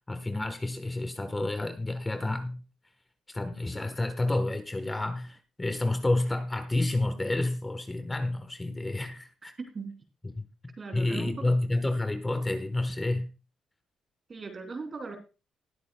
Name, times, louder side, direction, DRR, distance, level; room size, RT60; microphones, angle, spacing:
voice 1, 0.1-2.6 3.3-9.5 10.4-10.5 10.9-13.3, left 2 dB, 15° left, 1.3 m, -29 dB
voice 2, 9.6-10.0 10.8-11.5 14.3-15.2, right 4 dB, 35° right, 3.4 m, -38 dB
20.0 x 8.3 x 2.3 m
cardioid pair, 90°, 0 cm